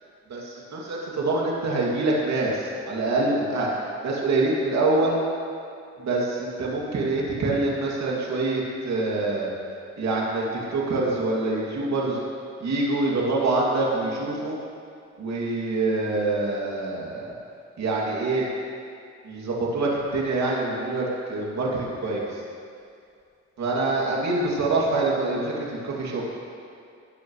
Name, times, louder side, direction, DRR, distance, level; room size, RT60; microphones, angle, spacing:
voice 1, 0.3-2.6 2.9-3.7 4.0-5.2 6.0-9.5 10.0-10.4 10.7-12.2 12.6-14.5 15.2-17.3 17.8-18.4 19.3-22.2 23.6-26.2, right 2 dB, 65° right, -4 dB, 2.8 m, -25 dB
18.5 x 11.0 x 3.3 m, 2.4 s
cardioid pair, 90°, 30 cm